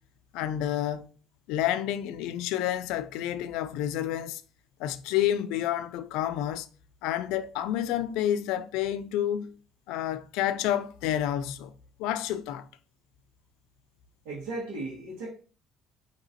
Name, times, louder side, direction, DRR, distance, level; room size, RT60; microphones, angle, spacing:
voice 1, 0.3-1.1 1.5-4.4 4.8-6.7 7.0-9.5 9.9-11.7 12.0-12.7, left 11 dB, 85° left, 0.3 m, -29 dB
voice 2, 14.2-15.3, right 2 dB, 85° right, 1.4 m, -36 dB
4.9 x 2.9 x 2.8 m
cardioid pair, 100°, 0 cm